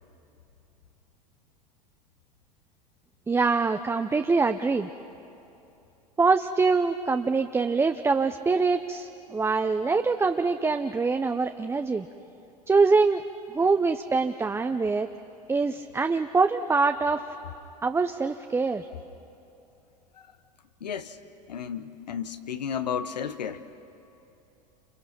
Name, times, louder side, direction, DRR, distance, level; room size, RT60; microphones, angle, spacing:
voice 1, 3.3-4.9 6.2-12.1 12.7-13.2 13.5-15.1 15.5-17.2 17.8-18.9, right 4 dB, 10° right, 7 dB, 0.7 m, -24 dB
voice 2, 20.8-21.2 21.5-23.6, left 7 dB, 85° left, 11 dB, 1.1 m, -33 dB
28.5 x 28.0 x 6.0 m, 2.8 s
hypercardioid pair, 85°, 21 cm